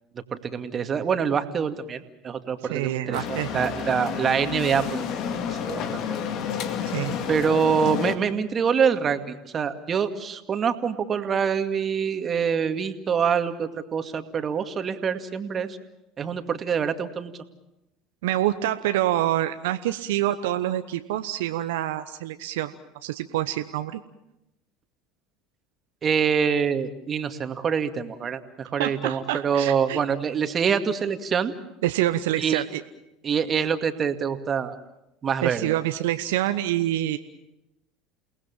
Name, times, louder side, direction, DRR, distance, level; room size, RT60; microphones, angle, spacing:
voice 1, 0.1-5.0 5.5-5.8 7.3-15.7 16.2-17.3 26.0-31.5 32.4-32.6 33.2-34.8 35.2-35.8, right 7 dB, 35° right, 8 dB, 2.2 m, -25 dB
voice 2, 2.6-3.6 6.8-7.2 18.2-22.7 23.0-24.0 28.8-30.0 31.8-32.8 35.4-37.2, right 14 dB, 75° right, 10 dB, 1.0 m, -26 dB
sound 1, 3.1-8.1, left 8 dB, 55° left, 2.3 m, -30 dB
29.5 x 19.0 x 7.3 m, 0.89 s
hypercardioid pair, 75°, 0 cm